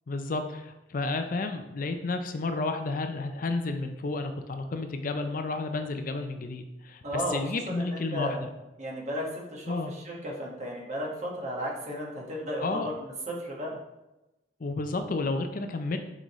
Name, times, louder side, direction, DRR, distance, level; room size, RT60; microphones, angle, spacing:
voice 1, 0.1-8.5 9.7-9.9 12.6-12.9 14.6-16.0, left 3 dB, 50° left, 7 dB, 0.5 m, -31 dB
voice 2, 7.0-7.4 7.7-8.4 8.8-13.8, equal, 45° right, -3 dB, 1.6 m, -34 dB
6.2 x 5.1 x 3.1 m, 0.98 s
head